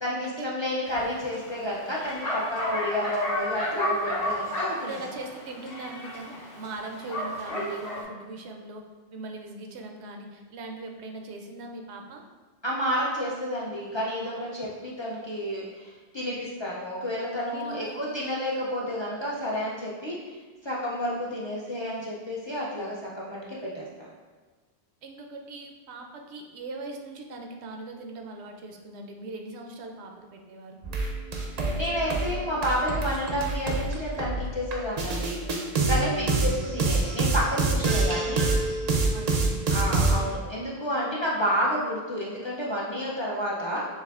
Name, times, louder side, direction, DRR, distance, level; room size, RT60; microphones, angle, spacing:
voice 1, 0.0-5.0 12.6-20.4 20.6-24.1 31.8-35.4 35.9-38.5 39.7-43.9, equal, 40° left, -5 dB, 0.4 m, -30 dB
Bark, 0.8-8.0, equal, 60° left, 1.2 m, -32 dB
voice 2, 4.8-8.8 9.1-12.2 17.4-18.1 25.0-30.8 36.1-36.6 39.1-39.9, right 2 dB, 85° right, 3 dB, 0.9 m, -40 dB
sound 1, 30.8-40.4, right 3 dB, 50° right, 0.5 m, -26 dB
6.4 x 2.5 x 2.4 m, 1.4 s
omnidirectional pair, 1.1 m